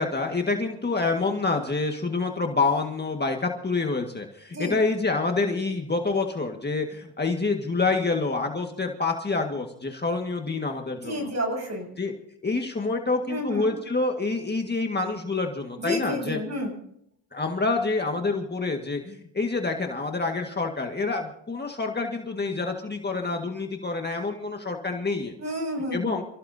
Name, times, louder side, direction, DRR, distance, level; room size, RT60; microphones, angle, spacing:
voice 1, 0.0-11.3 12.0-12.1 12.4-16.4 17.3-25.3 25.9-26.2, left 3 dB, 25° left, 3 dB, 1.8 m, -27 dB
voice 2, 11.0-11.9 13.3-13.7 15.8-16.7 25.4-26.2, left 1 dB, 40° right, 3 dB, 7.9 m, -30 dB
28.5 x 16.0 x 2.8 m, 0.71 s
cardioid pair, 105°, 42 cm